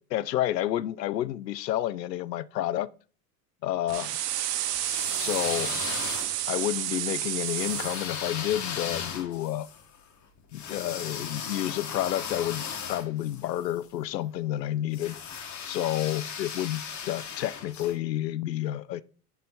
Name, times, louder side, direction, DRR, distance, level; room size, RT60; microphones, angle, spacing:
voice 1, 0.0-2.9 3.6-4.1 5.2-6.0 6.5-9.7 10.5-15.2 15.7-19.0, left 13 dB, 85° left, 0.5 m, -30 dB
sound 1, 3.9-8.1, right 12 dB, 70° right, 0.8 m, -30 dB
sound 2, 4.7-6.6 7.4-13.8 14.9-17.9, left 7 dB, 35° left, 1.4 m, -37 dB
7.6 x 3.1 x 4.2 m
figure-of-eight pair, 75°, 49 cm